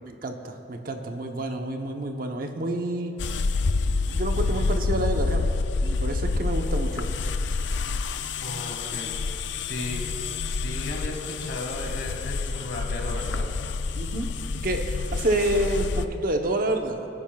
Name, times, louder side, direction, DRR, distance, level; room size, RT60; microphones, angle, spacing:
voice 1, 0.0-3.1 4.0-5.5 5.8-7.1 13.9-14.3 14.6-17.1, right 1 dB, 55° right, 4 dB, 0.9 m, -28 dB
sound 1, 3.2-16.1, left 3 dB, 90° left, 0.4 m, -28 dB
voice 2, 8.4-9.2 9.7-10.1 10.4-13.5, left 2 dB, 70° left, 0 dB, 1.9 m, -35 dB
25.0 x 9.8 x 2.3 m, 2.6 s
head